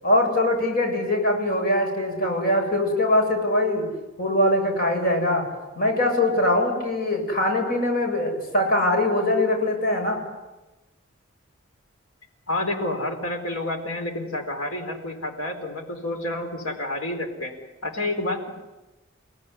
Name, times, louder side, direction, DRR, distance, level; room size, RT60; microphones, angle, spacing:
voice 1, 0.0-3.9 4.2-5.5 5.8-10.2, left 1 dB, 45° left, 2 dB, 7.8 m, -22 dB
voice 2, 12.5-17.5 17.8-18.5, left 1 dB, 85° left, 5 dB, 4.3 m, -29 dB
30.0 x 19.0 x 9.9 m, 1.1 s
head